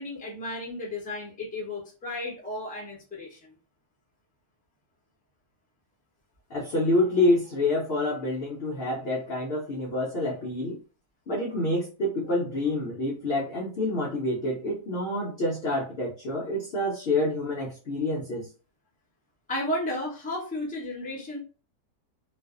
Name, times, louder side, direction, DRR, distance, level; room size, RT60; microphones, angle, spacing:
voice 1, 0.0-3.5 19.5-21.4, left 1 dB, 10° left, -3 dB, 0.4 m, -33 dB
voice 2, 6.5-10.8 11.3-18.5, left 1 dB, 65° left, -2 dB, 0.6 m, -27 dB
2.5 x 2.3 x 2.3 m, 0.34 s
omnidirectional pair, 1.7 m